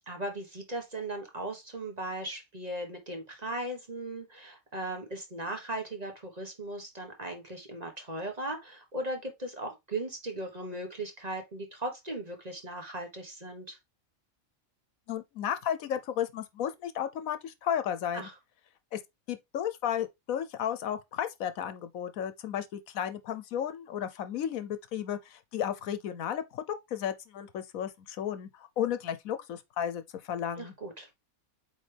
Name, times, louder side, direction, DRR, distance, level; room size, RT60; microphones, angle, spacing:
voice 1, 0.1-13.8 18.1-18.3 30.6-31.1, right 1 dB, 30° right, 1.4 m, -38 dB
voice 2, 15.1-18.3 18.9-19.0 19.3-30.7, left 9 dB, 75° left, 1.2 m, -33 dB
8.3 x 3.4 x 3.4 m
omnidirectional pair, 1.4 m